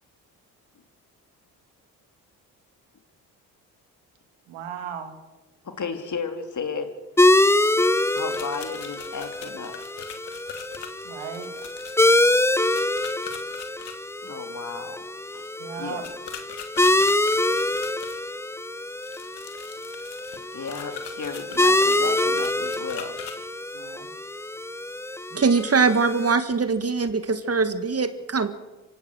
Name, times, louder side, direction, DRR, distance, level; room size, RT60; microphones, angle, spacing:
voice 1, 4.5-5.2 11.0-11.7 15.6-16.0 23.7-24.1, right 8 dB, 75° right, 6 dB, 2.7 m, -36 dB
voice 2, 5.6-6.9 8.1-9.7 14.2-15.0 15.3-15.5 15.8-16.0 20.5-23.5, left 5 dB, 40° left, 6 dB, 3.4 m, -34 dB
sound 1, 7.2-26.3, left 1 dB, 5° left, 0.9 m, -25 dB
sound 2, 8.1-13.9 16.0-18.2 19.0-23.4, left 9 dB, 65° left, 2.6 m, -41 dB
voice 3, 25.3-28.5, right 4 dB, 35° right, 11 dB, 2.0 m, -22 dB
26.0 x 16.0 x 6.5 m, 1.1 s
hypercardioid pair, 50°, 44 cm